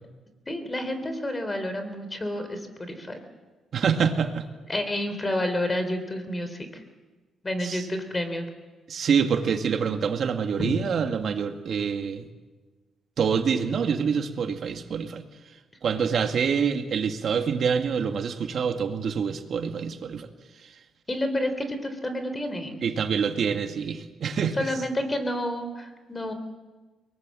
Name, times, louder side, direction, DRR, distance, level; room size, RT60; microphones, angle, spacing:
voice 1, 0.5-3.2 4.7-6.8 7.4-8.5 10.6-10.8 21.1-22.8 24.6-26.3, left 1 dB, 20° left, 8 dB, 3.6 m, -29 dB
voice 2, 3.7-4.5 7.6-7.9 8.9-12.3 13.2-15.3 15.8-20.3 20.6-20.7 22.8-24.7, right 6 dB, 60° right, 6 dB, 2.1 m, -26 dB
23.0 x 19.5 x 7.7 m, 1.3 s
cardioid pair, 90°, 0 cm